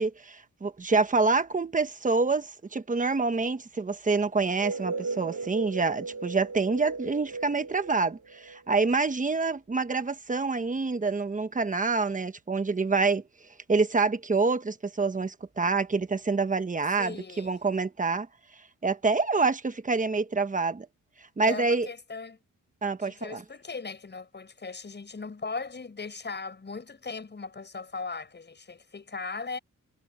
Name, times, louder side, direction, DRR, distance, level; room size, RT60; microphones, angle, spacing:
voice 1, 0.0-13.2 13.7-18.3 18.8-20.9 21.4-21.9 22.8-23.4, right 4 dB, 25° right, 1.1 m, -27 dB
sound 1, 4.4-9.0, right 4 dB, 60° right, 3.0 m, -36 dB
voice 2, 17.0-17.6 21.4-22.4 23.0-29.6, left 4 dB, 30° left, 7.5 m, -38 dB
wide cardioid pair, 135°, 33 cm